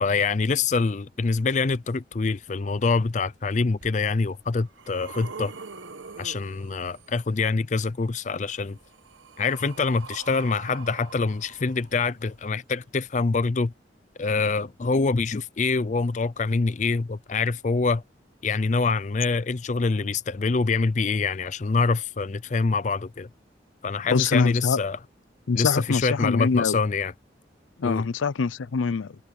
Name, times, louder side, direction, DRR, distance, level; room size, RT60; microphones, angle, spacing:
voice 1, 0.0-5.5 6.2-8.8 9.4-13.7 14.2-18.0 18.4-23.3 23.8-25.0 25.5-27.1 27.8-28.0, left 4 dB, 40° left, 0.4 m, -25 dB
sound 1, 3.8-3.9 4.5-7.2 8.4-12.3 13.3-13.4, right 5 dB, 85° right, 1.2 m, -43 dB
voice 2, 24.1-24.8 25.5-26.8 27.8-29.2, left 5 dB, 90° left, 0.5 m, -24 dB
head